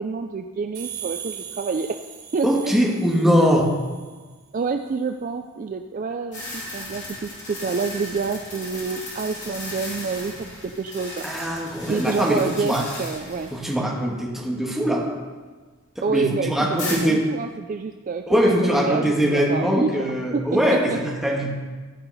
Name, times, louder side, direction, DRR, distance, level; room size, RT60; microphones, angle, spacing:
voice 1, 0.0-1.9 2.3-2.8 4.5-11.3 11.9-13.5 16.0-19.9 20.3-20.6 20.9-21.0, right 4 dB, 40° right, 6 dB, 0.3 m, -28 dB
sound 1, 0.7-4.3, right 10 dB, 90° right, 3.3 m, -39 dB
voice 2, 2.4-3.7 11.2-12.8 13.5-15.0 16.1-17.2 18.3-21.5, equal, ahead, -3 dB, 1.5 m, -21 dB
sound 2, 6.3-13.8 14.1-14.2 16.8-17.0, left 1 dB, 35° left, 3.4 m, -36 dB
15.0 x 5.7 x 4.1 m, 1.4 s
head